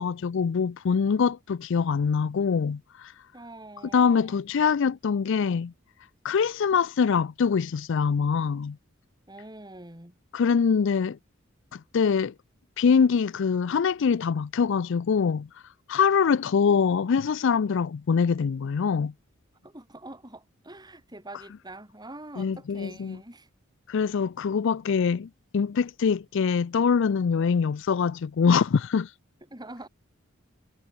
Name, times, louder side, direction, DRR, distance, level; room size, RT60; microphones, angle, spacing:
voice 1, 0.0-3.1 3.9-5.7 6.2-8.8 10.3-11.2 11.7-12.3 12.8-15.5 15.9-19.1 22.4-23.2 23.9-29.1, left 6 dB, 60° left, 0.4 m, -24 dB
voice 2, 3.3-4.4 9.3-10.2 19.6-23.5 29.5-29.9, right 2 dB, 20° right, 5.5 m, -44 dB
head